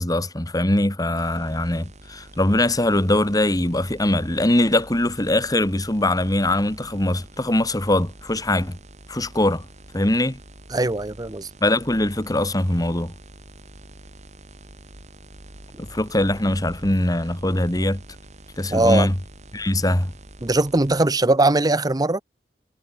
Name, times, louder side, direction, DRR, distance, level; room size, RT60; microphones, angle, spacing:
voice 1, 0.0-8.8 9.1-9.7 9.9-10.4 11.6-13.1 15.8-18.0 18.6-19.2 19.5-20.1, left 1 dB, 20° left, 2.0 m, -22 dB
sound 1, 1.1-21.1, right 1 dB, 40° right, 4.1 m, -45 dB
voice 2, 10.7-11.5 18.7-19.1 20.4-22.2, right 2 dB, 20° right, 0.8 m, -20 dB
head